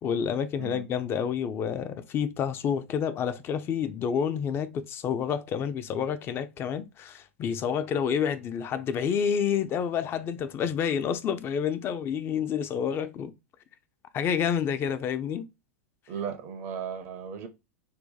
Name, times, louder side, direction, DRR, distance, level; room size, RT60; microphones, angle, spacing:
voice 1, 0.0-13.3 14.1-15.5, left 7 dB, 30° left, 0.5 m, -29 dB
voice 2, 16.1-17.5, right 7 dB, 45° right, 0.6 m, -36 dB
2.8 x 2.2 x 3.8 m
hypercardioid pair, 95°, 7 cm